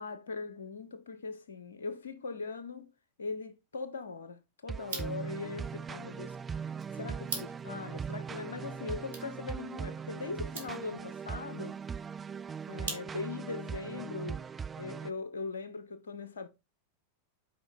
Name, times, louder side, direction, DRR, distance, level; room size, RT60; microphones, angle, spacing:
voice 1, 0.0-2.9 3.2-11.8 12.7-14.5 14.8-16.5, left 4 dB, 70° left, 1.1 m, -40 dB
sound 1, 4.7-15.1, right 6 dB, 20° right, 0.3 m, -40 dB
sound 2, 4.8-13.5, right 4 dB, 65° right, 2.5 m, -46 dB
7.6 x 5.0 x 4.2 m
figure-of-eight pair, 90°, 0 cm